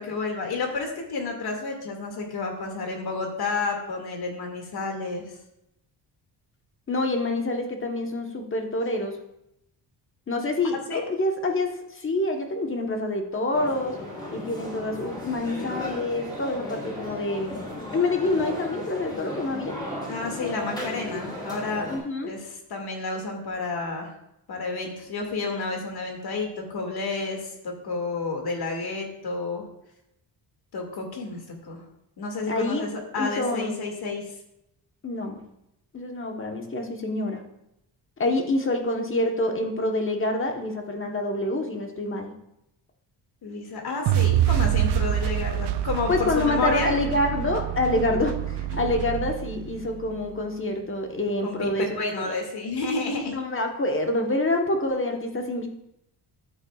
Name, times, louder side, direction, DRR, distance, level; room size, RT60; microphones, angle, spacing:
voice 1, 0.0-5.2 10.9-11.0 20.1-21.9 22.2-24.1 24.5-29.6 30.7-31.8 32.2-34.3 43.4-46.9 48.7-48.9 51.4-53.4, left 3 dB, 60° left, 2 dB, 2.2 m, -30 dB
voice 2, 6.9-9.2 10.3-14.0 14.3-17.6 17.9-19.8 21.9-22.3 32.5-32.9 33.2-33.7 35.0-35.4 35.9-37.4 38.2-42.3 46.1-52.4 53.3-55.7, left 2 dB, 30° left, 3 dB, 1.2 m, -27 dB
sound 1, 13.5-22.0, left 1 dB, 10° left, 3.5 m, -35 dB
sound 2, 44.1-50.2, right 12 dB, 70° right, 0.6 m, -26 dB
13.0 x 8.3 x 2.4 m, 0.82 s
cardioid pair, 135°, 43 cm